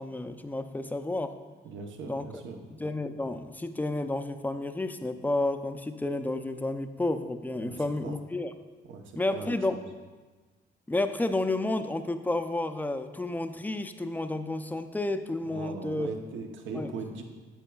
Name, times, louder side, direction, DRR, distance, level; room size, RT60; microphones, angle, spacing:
voice 1, 0.0-1.3 2.1-2.3 2.8-8.5 9.2-9.8 10.9-16.1 16.7-16.9, left 2 dB, 10° left, 9 dB, 0.4 m, -31 dB
voice 2, 1.6-2.6 7.6-8.1 8.9-9.8 15.4-17.2, right 4 dB, 75° right, 4 dB, 0.9 m, -40 dB
10.0 x 7.7 x 2.3 m, 1.3 s
cardioid pair, 90°, 20 cm